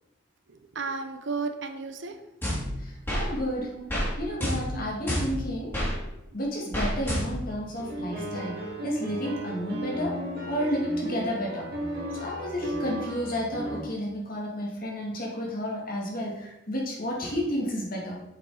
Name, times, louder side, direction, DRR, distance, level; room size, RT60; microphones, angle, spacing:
voice 1, 0.5-2.2 3.6-3.9 4.7-4.9, right 4 dB, 65° right, 7 dB, 0.8 m, -34 dB
sound 1, 2.4-3.3 3.9-4.1 4.4-5.9 6.7-7.5, equal, 10° left, 2.5 m, -29 dB
voice 2, 2.8-3.7 4.2-5.7 6.3-11.7 12.1-18.2, equal, 45° left, -2 dB, 2.2 m, -31 dB
sound 2, 7.7-13.8, right 1 dB, 50° right, 2.3 m, -35 dB
7.6 x 5.4 x 4.9 m, 0.88 s
head